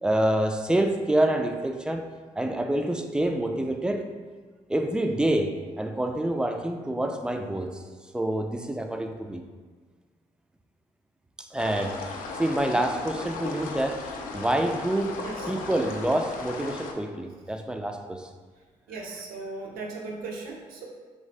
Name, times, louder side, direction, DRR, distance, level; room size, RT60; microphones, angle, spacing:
voice 1, 0.0-2.1 2.4-4.1 4.7-7.8 8.1-9.5 11.4-15.2 15.5-18.3, right 1 dB, 5° right, 5 dB, 0.3 m, -27 dB
sound 1, 11.6-16.9, left 3 dB, 70° left, 0.4 m, -36 dB
voice 2, 18.9-20.8, right 3 dB, 75° right, -1 dB, 0.6 m, -37 dB
3.1 x 2.6 x 3.2 m, 1.4 s
hypercardioid pair, 50°, 15 cm